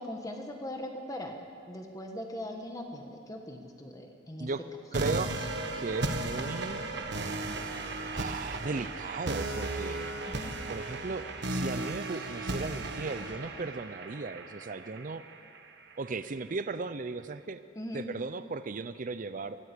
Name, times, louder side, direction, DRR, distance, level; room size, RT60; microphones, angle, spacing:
voice 1, 0.0-4.5 10.3-10.5 17.7-18.0, left 1 dB, 15° left, 3 dB, 1.4 m, -40 dB
voice 2, 4.9-5.4 5.8-6.8 8.1-10.2 10.7-15.2 16.0-17.6 17.9-19.6, right 3 dB, 40° right, 12 dB, 0.5 m, -36 dB
sound 1, 4.9-15.9, right 2 dB, 60° right, 1.6 m, -35 dB
24.0 x 14.5 x 8.3 m, 2.5 s
head